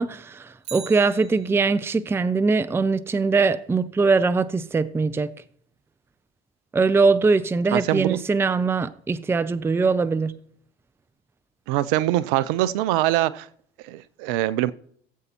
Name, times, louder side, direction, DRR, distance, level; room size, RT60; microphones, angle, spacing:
voice 1, 0.0-5.3 6.7-10.3, right 4 dB, 10° right, 0.5 m, -22 dB
Bicycle, 0.6-2.0 10.3-10.4, right 8 dB, 85° right, 1.3 m, -42 dB
voice 2, 7.7-8.2 11.7-13.5 13.8-14.7, right 15 dB, 60° right, 0.6 m, -23 dB
18.5 x 8.0 x 2.9 m
hypercardioid pair, 80°, 30 cm